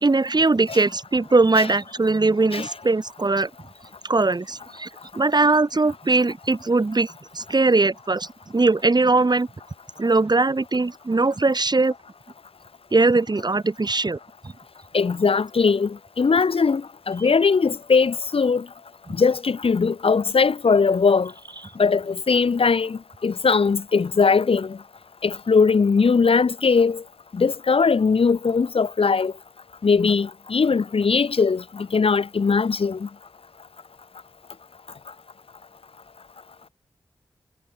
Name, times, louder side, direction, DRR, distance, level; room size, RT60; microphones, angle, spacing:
voice 1, 0.0-3.5 4.1-4.9 5.1-7.1 7.3-8.3 8.5-9.5 10.0-11.9 12.9-14.2, right 3 dB, 45° right, 2.0 m, -20 dB
voice 2, 14.9-18.6 19.2-21.3 21.8-24.8 25.2-27.0 27.3-29.3 29.8-33.1, left 5 dB, 65° left, 1.1 m, -20 dB
cardioid pair, 45°, 10 cm